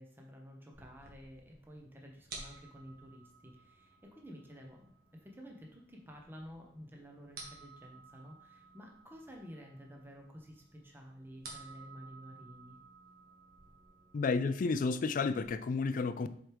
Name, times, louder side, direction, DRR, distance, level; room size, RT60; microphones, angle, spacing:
voice 1, 0.0-12.8, equal, 10° right, 0.9 m, -52 dB
sound 1, 0.7-15.5, right 3 dB, 60° right, 1.5 m, -55 dB
voice 2, 14.1-16.3, left 4 dB, 45° left, 0.3 m, -31 dB
7.8 x 4.6 x 3.4 m
head